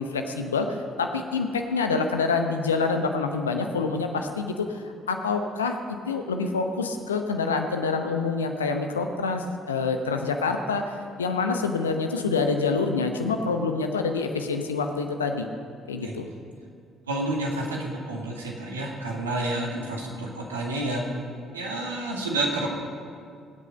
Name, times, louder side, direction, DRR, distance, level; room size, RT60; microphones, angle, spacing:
voice 1, 0.0-5.8 6.1-15.5 15.9-16.3, left 4 dB, 80° left, 5 dB, 0.9 m, -27 dB
voice 2, 17.1-21.0 21.5-22.7, right 2 dB, 80° right, -1 dB, 2.0 m, -29 dB
23.0 x 8.4 x 5.3 m, 2.3 s
figure-of-eight pair, 45°, 0 cm